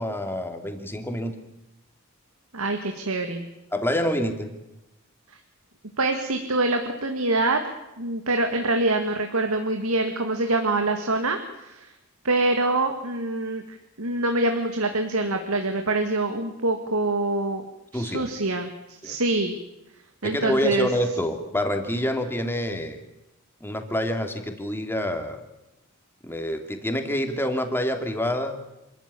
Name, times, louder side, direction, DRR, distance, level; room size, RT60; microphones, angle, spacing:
voice 1, 0.0-1.3 3.7-4.5 17.9-18.3 19.0-19.2 20.2-23.0 23.6-25.4 26.2-28.6, equal, 10° left, 5 dB, 2.7 m, -27 dB
voice 2, 2.5-3.5 6.0-7.6 8.0-11.9 12.2-17.6 17.9-19.6 20.2-20.9, right 2 dB, 80° right, 5 dB, 2.1 m, -25 dB
27.0 x 14.0 x 9.9 m, 0.96 s
head